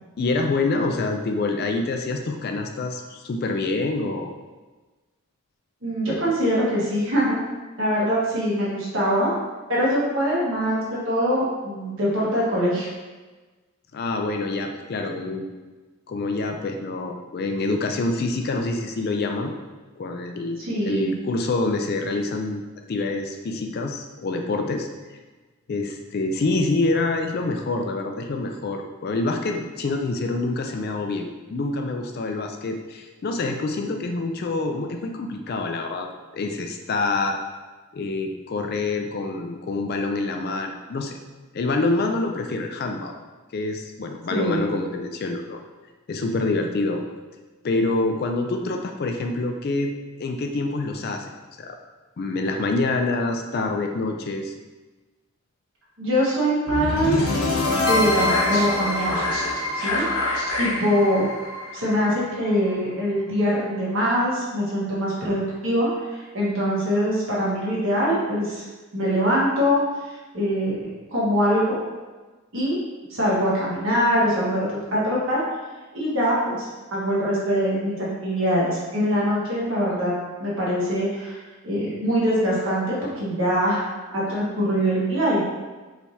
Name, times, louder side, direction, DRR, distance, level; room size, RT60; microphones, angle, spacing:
voice 1, 0.2-4.3 13.9-15.5 16.1-19.6 20.0-22.6 22.9-25.2 25.7-37.4 37.9-41.2 41.5-43.1 43.5-45.6 46.1-47.0 47.6-51.3 51.6-51.8 52.2-54.5, left 2 dB, 45° left, 4 dB, 0.3 m, -26 dB
voice 2, 5.8-7.4 7.8-9.3 9.7-10.8 11.0-12.9 20.6-21.1 44.3-44.8 56.0-57.4 57.7-59.4 59.7-61.3 61.7-68.6 68.9-69.8 70.3-71.8 72.5-72.8 73.1-75.4 75.9-80.1 80.4-83.8 84.1-85.5, equal, 60° right, -6 dB, 1.4 m, -23 dB
sound 1, 56.7-62.7, left 2 dB, 85° left, 0.9 m, -24 dB
4.4 x 3.3 x 2.7 m, 1.3 s
head